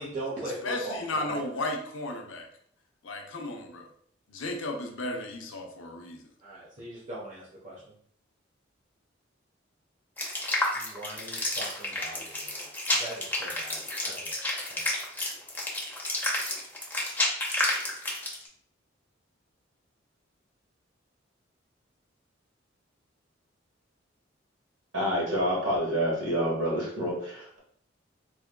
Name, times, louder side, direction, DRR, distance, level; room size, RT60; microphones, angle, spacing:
voice 1, 0.0-1.4 6.4-7.9 10.7-12.6 12.9-13.8 14.0-14.4 14.7-14.8, right 2 dB, 40° right, -7 dB, 0.9 m, -39 dB
voice 2, 0.6-2.5 3.0-3.9 4.3-6.2, left 2 dB, 80° left, 2 dB, 0.7 m, -34 dB
sound 1, 10.2-18.5, left 1 dB, 10° left, 0.8 m, -30 dB
voice 3, 24.9-27.6, equal, 80° right, -4 dB, 1.5 m, -28 dB
3.7 x 3.3 x 2.2 m, 0.63 s
head